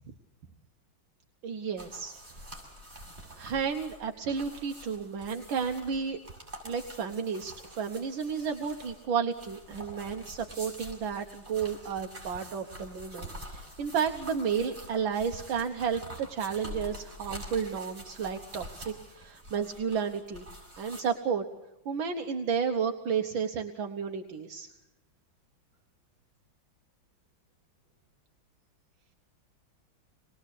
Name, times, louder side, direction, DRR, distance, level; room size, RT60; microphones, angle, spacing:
voice 1, 1.4-2.2 3.3-6.2 6.6-20.5 20.8-21.4 21.9-24.7, right 6 dB, 75° right, 4 dB, 1.9 m, -32 dB
sound 1, 1.8-21.0, right 1 dB, 30° right, 7.5 m, -46 dB
26.5 x 20.5 x 8.3 m, 0.97 s
omnidirectional pair, 2.2 m